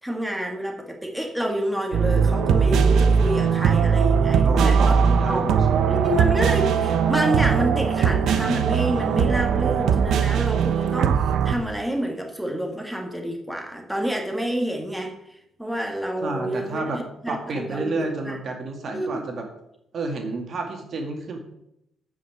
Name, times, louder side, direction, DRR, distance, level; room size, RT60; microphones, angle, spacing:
voice 1, 0.0-4.9 5.3-5.6 5.9-18.4 18.9-19.3, equal, ahead, 1 dB, 2.0 m, -28 dB
sound 1, 1.9-11.5, right 6 dB, 75° right, 0.9 m, -20 dB
voice 2, 4.4-6.0 16.2-17.0 17.3-19.5 19.9-21.4, right 3 dB, 55° right, 3 dB, 2.2 m, -30 dB
9.4 x 5.5 x 7.9 m, 0.81 s
cardioid pair, 90°, 0 cm